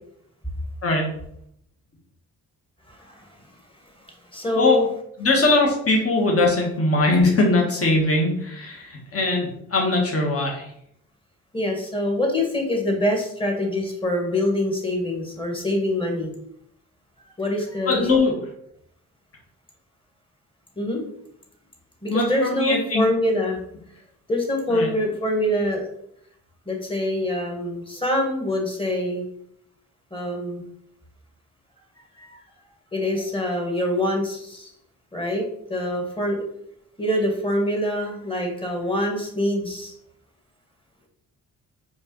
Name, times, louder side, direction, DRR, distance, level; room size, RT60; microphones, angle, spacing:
voice 1, 0.8-1.1 4.6-4.8 5.2-10.7 17.9-18.3 22.1-23.0 24.7-24.9, left 2 dB, 35° left, 0 dB, 1.4 m, -21 dB
voice 2, 2.9-3.3 4.3-4.9 11.5-16.3 17.4-18.0 20.8-21.0 22.0-23.6 24.3-25.9 26.7-29.2 30.1-30.6 32.2-32.4 32.9-34.7 35.1-35.4 35.7-36.4 37.0-39.9, left 1 dB, 15° left, 1 dB, 1.4 m, -25 dB
4.5 x 2.5 x 3.1 m, 0.71 s
supercardioid pair, 45°, 39 cm